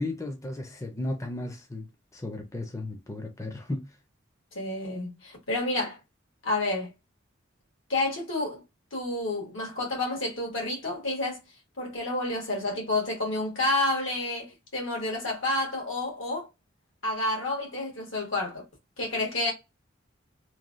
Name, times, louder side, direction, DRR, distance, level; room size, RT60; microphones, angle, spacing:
voice 1, 0.0-1.9 2.1-3.9, left 2 dB, 15° left, 0.5 m, -34 dB
voice 2, 4.5-6.0 6.4-6.9 7.9-8.6 8.9-11.4 11.8-16.5 17.0-18.6 19.0-19.5, left 2 dB, 80° left, 1.4 m, -29 dB
3.0 x 2.2 x 2.5 m
head